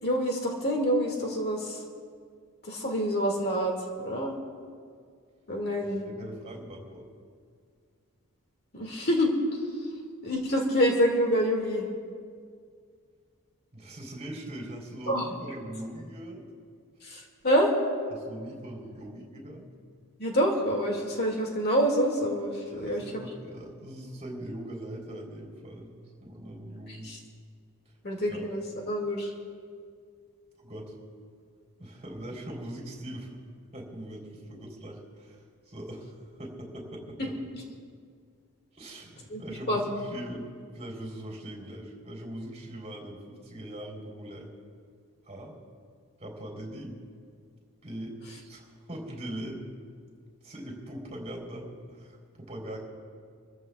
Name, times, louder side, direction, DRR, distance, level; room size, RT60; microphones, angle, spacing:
voice 1, 0.0-1.8 2.6-4.3 5.5-6.1 8.7-9.3 10.2-11.9 15.1-15.3 17.0-17.7 20.2-23.3 26.9-27.2 28.0-29.3 39.3-39.4 39.7-39.9, equal, 45° left, 0 dB, 2.2 m, -27 dB
voice 2, 5.8-7.1 13.7-16.4 18.1-19.7 22.7-27.1 28.3-28.5 30.6-31.0 31.8-33.4 33.7-36.1 36.4-37.2 38.7-40.5 40.7-44.5 45.2-45.5 46.2-47.0 47.8-49.6 50.4-52.8, right 1 dB, 30° right, -1 dB, 3.7 m, -41 dB
28.0 x 14.5 x 2.4 m, 2.1 s
head